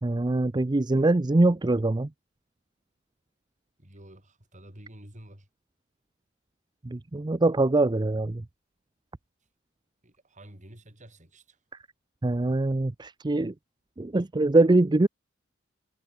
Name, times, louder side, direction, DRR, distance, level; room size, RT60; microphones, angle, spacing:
voice 1, 0.0-2.1 6.8-8.4 12.2-13.5 14.0-15.1, right 2 dB, 20° right, 0.5 m, -23 dB
voice 2, 3.8-5.5 10.0-11.6, right 1 dB, 40° right, 6.7 m, -50 dB
head